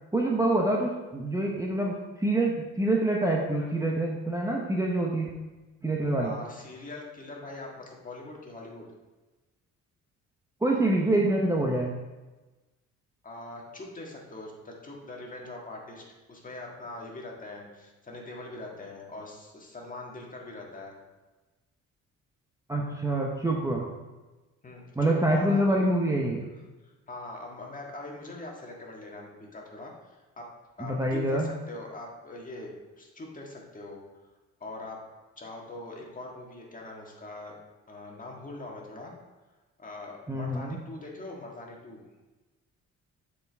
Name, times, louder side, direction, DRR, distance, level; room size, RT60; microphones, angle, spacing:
voice 1, 0.1-5.3 5.8-6.3 10.6-11.9 22.7-23.9 25.0-26.4 30.8-31.5 40.3-40.8, right 1 dB, 10° right, -1 dB, 0.8 m, -26 dB
voice 2, 6.2-8.9 13.2-20.9 24.6-25.6 26.8-30.5 30.8-34.0 34.6-35.0 35.4-37.5 37.9-39.1 39.8-42.0, left 2 dB, 25° left, -1 dB, 1.6 m, -42 dB
7.8 x 4.8 x 3.5 m, 1.2 s
cardioid pair, 90°, 30 cm